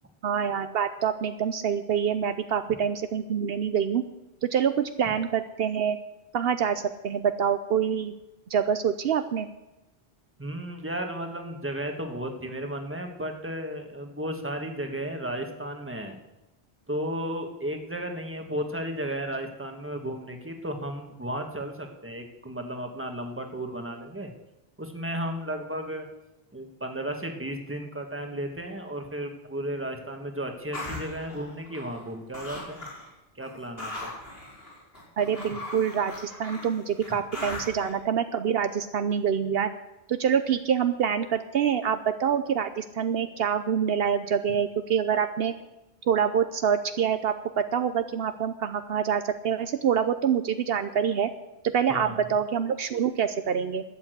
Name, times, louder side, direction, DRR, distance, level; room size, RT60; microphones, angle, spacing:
voice 1, 0.2-4.0 4.4-6.0 6.3-8.1 8.5-9.5 35.2-39.7 40.1-45.5 46.0-51.3 51.7-53.8, right 8 dB, 70° right, 10 dB, 0.9 m, -26 dB
voice 2, 10.4-16.2 16.9-24.3 24.8-26.1 26.5-32.8 33.3-34.1 51.9-52.2, right 1 dB, 10° right, 4 dB, 1.4 m, -34 dB
sound 1, 30.7-32.1 32.3-33.1 33.4-37.9, left 2 dB, 70° left, 5.1 m, -39 dB
12.5 x 8.3 x 7.9 m, 0.96 s
omnidirectional pair, 1.0 m